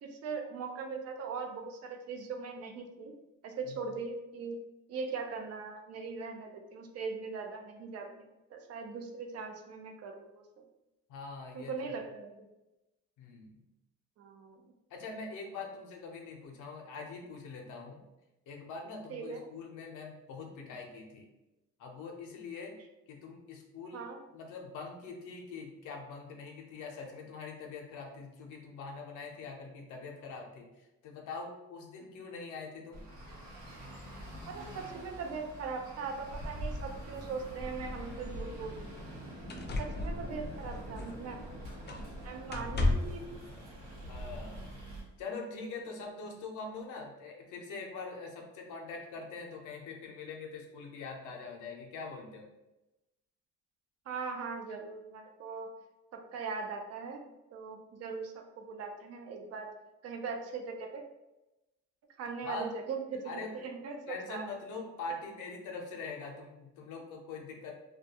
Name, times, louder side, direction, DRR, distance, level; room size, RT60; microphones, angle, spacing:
voice 1, 0.0-3.1 3.4-4.6 4.9-10.4 11.5-12.3 14.2-14.6 19.1-19.4 23.9-24.2 34.5-39.0 39.8-41.4 42.2-43.4 54.1-55.7 56.1-57.2 57.5-59.7 60.0-61.0 62.2-64.4 64.8-65.2, right 4 dB, 55° right, 4 dB, 0.5 m, -40 dB
voice 2, 11.1-11.8 13.2-13.6 14.9-18.0 18.5-21.3 21.8-22.8 23.1-24.0 24.3-33.0 44.1-44.7 45.2-52.5 62.4-62.7 63.2-63.5 64.1-67.7, left 4 dB, 85° left, 0 dB, 0.6 m, -43 dB
Traffic noise roadway noise, 32.9-45.0, right 1 dB, 80° right, 0.9 m, -44 dB
sound 1, 38.2-38.3 39.0-39.1 39.5-41.4 41.9-42.2 42.5-43.3 44.4-44.5, left 2 dB, 35° left, 0.4 m, -34 dB
2.2 x 2.2 x 2.7 m, 0.98 s
cardioid pair, 90°, 30 cm